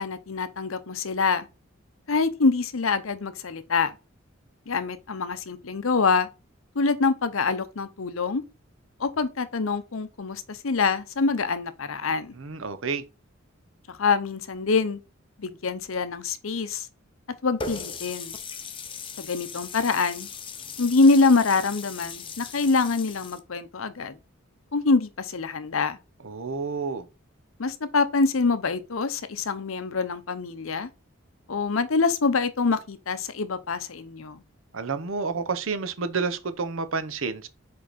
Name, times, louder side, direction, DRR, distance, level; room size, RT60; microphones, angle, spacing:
voice 1, 0.0-1.5 2.1-3.9 4.7-6.3 6.7-8.4 9.0-12.3 13.9-15.0 15.4-16.9 17.4-18.4 19.2-20.3 20.8-24.2 24.7-26.0 27.6-30.9 31.5-34.4, left 4 dB, 80° left, 0.7 m, -25 dB
voice 2, 12.4-13.0 26.2-27.0 34.7-37.5, right 4 dB, 75° right, 0.8 m, -29 dB
Water tap faucet, 17.6-23.4, left 5 dB, 25° left, 0.6 m, -38 dB
5.1 x 4.7 x 4.1 m
head